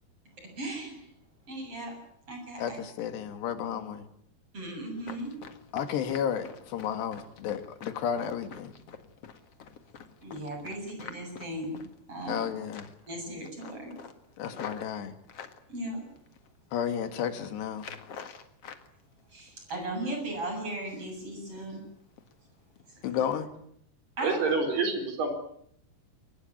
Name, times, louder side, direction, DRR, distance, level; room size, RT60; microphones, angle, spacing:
voice 1, 0.4-1.1 1.5-1.9 2.3-2.8 3.6-3.7 4.5-5.4 10.2-11.8 12.1-12.5 13.0-13.9 15.7-16.0 19.3-21.8 22.9-23.2 24.2-24.5, right 1 dB, 30° right, 4 dB, 8.3 m, -37 dB
voice 2, 2.6-4.1 5.7-8.7 12.3-12.9 14.4-15.2 16.7-17.9 23.0-23.5, left 8 dB, 80° left, 9 dB, 4.0 m, -32 dB
Run, 5.0-12.4 12.7-13.1 13.4-15.6 16.2-16.7 17.0-17.3 17.7-18.9 19.2-20.0 20.3-20.5 20.9-21.3 21.6-21.7 22.2-22.3 22.7-22.8, left 7 dB, 50° left, 2.1 m, -46 dB
voice 3, 24.2-25.3, right 4 dB, 65° right, 5 dB, 6.0 m, -27 dB
23.5 x 20.0 x 9.7 m, 0.68 s
omnidirectional pair, 4.9 m